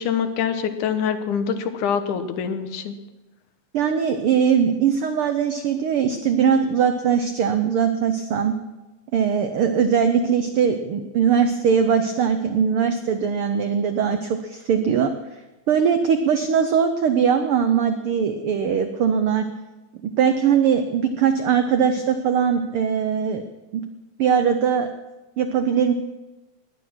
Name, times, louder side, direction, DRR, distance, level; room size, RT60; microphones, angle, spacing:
voice 1, 0.0-2.9, left 7 dB, 85° left, 9 dB, 2.5 m, -25 dB
voice 2, 3.7-8.5 9.1-15.1 15.7-19.5 20.0-23.4 23.7-23.8 24.2-24.9 25.4-25.9, right 7 dB, 80° right, 8 dB, 1.2 m, -20 dB
19.5 x 9.5 x 6.2 m, 1.1 s
omnidirectional pair, 3.5 m